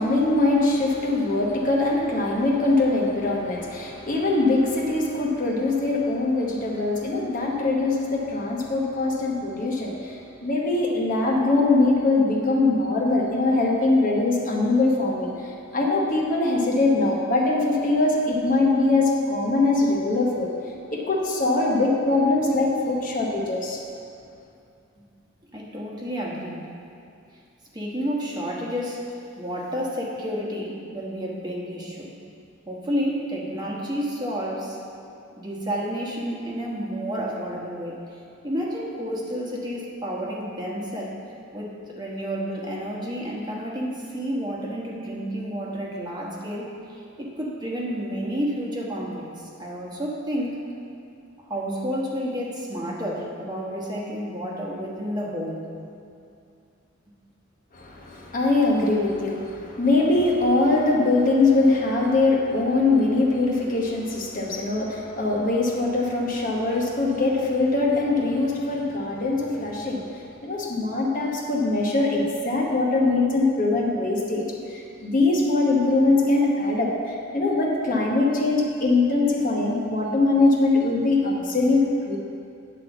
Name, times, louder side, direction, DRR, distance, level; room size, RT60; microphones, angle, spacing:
voice 1, 0.0-20.5 20.9-23.8 57.7-70.0 70.4-82.2, left 2 dB, 40° left, -2 dB, 1.0 m, -22 dB
voice 2, 25.5-26.6 27.7-32.1 32.7-34.8 35.4-38.0 38.4-41.2 41.5-50.6 51.5-55.7, equal, 20° right, -3 dB, 1.2 m, -30 dB
9.7 x 4.2 x 7.0 m, 2.5 s
head